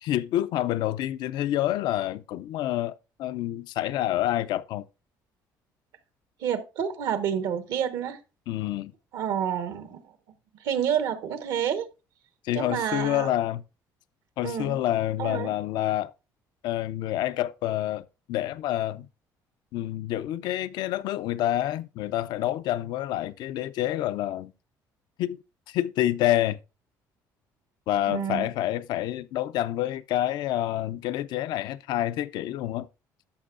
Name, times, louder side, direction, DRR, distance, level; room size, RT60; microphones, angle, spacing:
voice 1, 0.0-4.9 8.5-8.9 12.4-13.6 14.4-16.1 16.6-19.1 19.7-24.5 25.2-25.4 25.7-26.6 27.9-32.9, left 13 dB, 75° left, 0.4 m, -28 dB
voice 2, 6.4-8.2 9.1-10.0 10.6-11.9 12.5-13.3 14.4-14.8 15.2-15.5 28.1-28.5, right 8 dB, 80° right, 1.1 m, -29 dB
11.5 x 6.7 x 2.4 m
cardioid pair, 105°, 7 cm